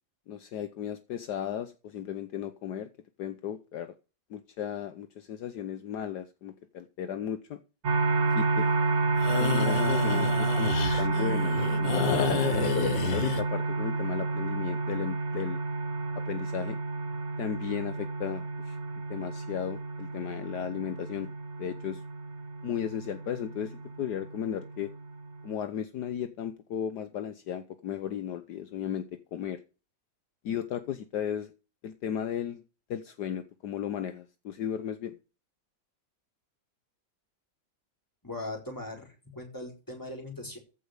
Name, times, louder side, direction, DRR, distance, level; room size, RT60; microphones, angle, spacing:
voice 1, 0.3-2.9 3.2-3.9 4.3-7.6 8.3-8.8 9.4-15.6 16.2-16.8 17.4-18.8 19.1-21.3 21.6-22.0 22.6-24.9 25.4-29.6 30.4-31.5 31.8-32.6 32.9-35.2, left 9 dB, 70° left, 10 dB, 1.4 m, -35 dB
sound 1, 7.8-25.6, right 3 dB, 45° right, 1.4 m, -30 dB
sound 2, 9.2-13.4, left 7 dB, 85° left, 1.9 m, -30 dB
voice 2, 38.2-40.6, left 2 dB, 10° left, 1 dB, 4.2 m, -39 dB
15.0 x 5.5 x 6.6 m, 0.34 s
omnidirectional pair, 1.9 m